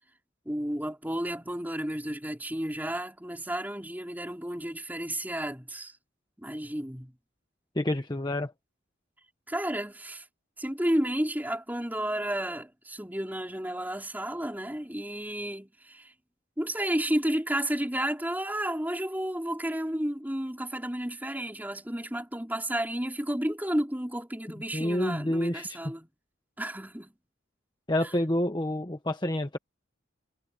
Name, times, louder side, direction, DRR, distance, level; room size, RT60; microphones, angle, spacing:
voice 1, 0.4-6.0 6.4-7.1 9.5-10.3 10.6-16.1 16.6-26.1 26.6-27.1 28.0-28.1, right 1 dB, 10° right, 4.3 m, -32 dB
voice 2, 7.7-8.5 24.7-25.8 27.9-29.6, left 1 dB, 20° left, 1.2 m, -28 dB
head